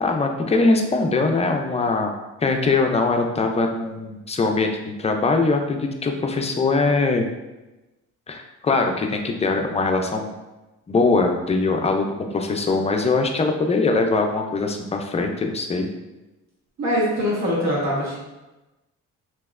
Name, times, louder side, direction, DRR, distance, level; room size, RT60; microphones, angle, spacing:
voice 1, 0.0-2.1 2.4-7.3 8.3-10.3 10.9-15.9, left 3 dB, 20° left, 4 dB, 0.3 m, -22 dB
voice 2, 16.8-18.2, equal, 65° right, -5 dB, 1.2 m, -22 dB
3.0 x 2.8 x 2.3 m, 1.1 s
cardioid pair, 90°, 30 cm